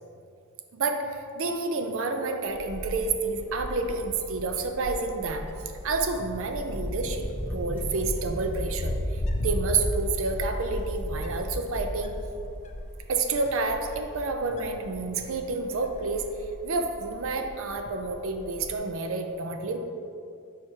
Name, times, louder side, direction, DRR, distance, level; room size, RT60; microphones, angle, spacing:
voice 1, 0.7-5.5 5.8-12.2 13.1-16.3 16.6-19.8, right 3 dB, 65° right, 5 dB, 0.5 m, -29 dB
Wind, 2.5-18.8, left 1 dB, 35° left, 0.4 m, -36 dB
sound 1, 5.8-12.5 12.9-13.0 14.1-14.2 14.4-14.7, equal, 5° left, 1.2 m, -39 dB
4.9 x 4.6 x 4.4 m, 2.5 s
head